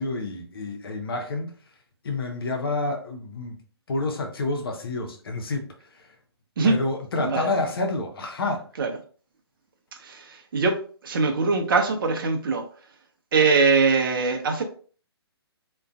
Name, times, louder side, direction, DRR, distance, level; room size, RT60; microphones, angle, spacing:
voice 1, 0.0-1.6 2.0-3.6 3.9-6.1 6.6-8.7, left 2 dB, 60° left, 0.6 m, -29 dB
voice 2, 10.0-10.8 11.0-12.6 13.3-14.6, right 4 dB, 55° right, 0.5 m, -22 dB
2.4 x 2.2 x 2.4 m
figure-of-eight pair, 130°, 14 cm